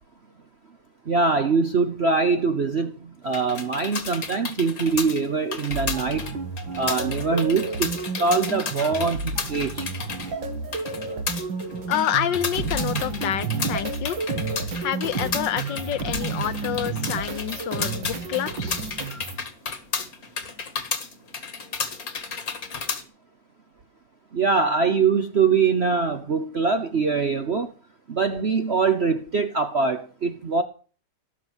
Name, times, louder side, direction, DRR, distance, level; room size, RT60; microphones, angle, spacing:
voice 1, 1.1-6.3 6.7-9.9 24.3-27.7 28.1-30.6, right 4 dB, 45° right, 1.0 m, -23 dB
sound 1, 3.2-23.0, left 5 dB, 50° left, 2.1 m, -33 dB
sound 2, 5.7-19.4, right 4 dB, 85° right, 2.7 m, -31 dB
voice 2, 11.9-14.2 14.8-18.8, left 11 dB, 75° left, 1.5 m, -28 dB
18.0 x 6.2 x 8.2 m
omnidirectional pair, 2.0 m